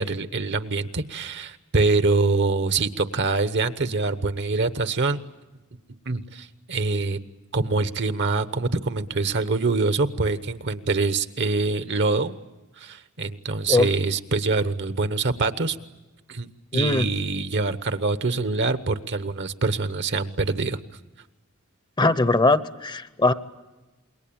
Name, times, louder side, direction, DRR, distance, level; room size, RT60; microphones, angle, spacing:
voice 1, 0.0-5.2 6.1-7.2 7.5-12.4 12.8-15.8 16.3-20.8, right 3 dB, 55° right, 12 dB, 1.1 m, -25 dB
voice 2, 16.7-17.1 22.0-23.3, left 2 dB, 20° left, 13 dB, 0.8 m, -20 dB
28.0 x 22.0 x 8.8 m, 1.1 s
head